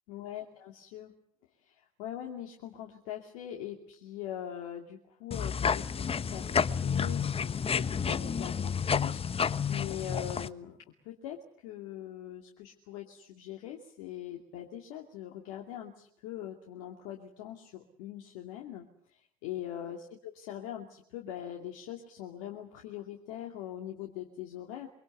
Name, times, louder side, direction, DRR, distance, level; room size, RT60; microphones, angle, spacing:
voice 1, 0.1-1.1 1.6-10.8 11.0-24.9, left 11 dB, 75° left, 1 dB, 2.6 m, -42 dB
sound 1, 5.3-10.5, left 6 dB, 35° left, 1.2 m, -30 dB
24.5 x 24.0 x 8.0 m, 0.64 s
hypercardioid pair, 60°, 18 cm